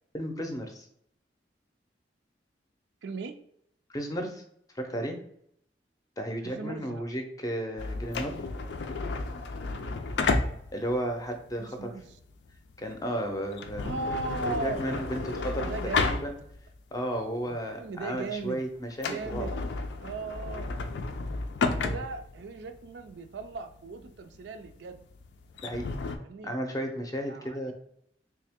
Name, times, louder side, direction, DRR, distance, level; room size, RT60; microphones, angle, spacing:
voice 1, 0.1-0.9 3.9-4.4 4.8-5.2 6.2-8.4 10.7-11.9 12.8-13.9 14.4-15.6 16.0-16.3 16.9-19.5 21.8-22.0 25.6-25.8 26.4-27.7, equal, 20° left, 4 dB, 0.5 m, -33 dB
voice 2, 3.0-3.3 6.4-7.0 11.6-12.2 13.8-16.3 17.5-18.6 19.1-19.5 20.0-20.7 21.7-25.0 26.2-26.5 27.2-27.7, right 4 dB, 80° right, 7 dB, 0.4 m, -38 dB
sound 1, 7.8-16.8 17.2-17.3 17.9-18.1 18.4-18.5 18.9-26.2, left 3 dB, 80° left, 0.4 m, -32 dB
3.2 x 2.7 x 3.5 m, 0.72 s
head